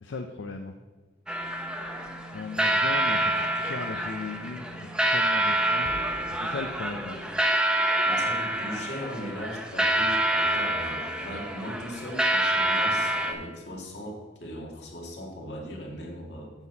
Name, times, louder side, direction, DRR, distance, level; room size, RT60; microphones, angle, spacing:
voice 1, 0.0-0.7 2.3-5.9 6.3-7.5, left 4 dB, 90° left, 5 dB, 0.5 m, -37 dB
sound 1, 1.3-13.3, right 1 dB, 5° right, 0.7 m, -27 dB
sound 2, 5.8-8.2, equal, 40° left, 2.5 m, -47 dB
voice 2, 8.1-16.5, equal, 70° left, -1 dB, 2.0 m, -39 dB
8.9 x 4.3 x 7.1 m, 1.3 s
head